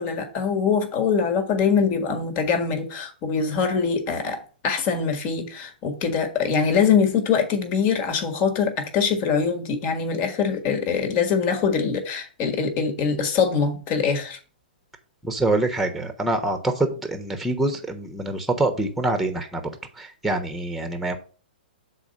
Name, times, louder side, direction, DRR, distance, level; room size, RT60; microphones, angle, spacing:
voice 1, 0.0-14.4, left 6 dB, 35° left, 1.7 m, -23 dB
voice 2, 15.2-19.6 20.0-21.2, right 2 dB, ahead, 1.2 m, -25 dB
7.0 x 4.3 x 5.3 m
hypercardioid pair, 130°, 5 cm